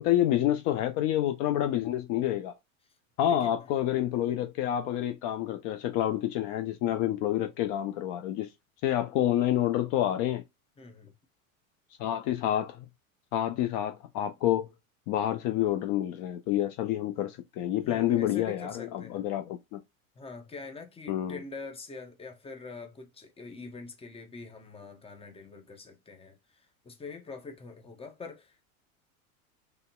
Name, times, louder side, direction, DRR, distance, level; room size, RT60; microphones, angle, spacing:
voice 1, 0.0-2.5 3.2-8.5 8.8-10.4 12.0-12.9 13.3-14.7 15.1-19.8 21.1-21.4, left 12 dB, 45° left, 0.6 m, -28 dB
voice 2, 10.8-11.1 17.8-19.2 20.1-28.7, left 4 dB, 15° left, 0.9 m, -44 dB
3.9 x 3.5 x 2.2 m
hypercardioid pair, 100°, 42 cm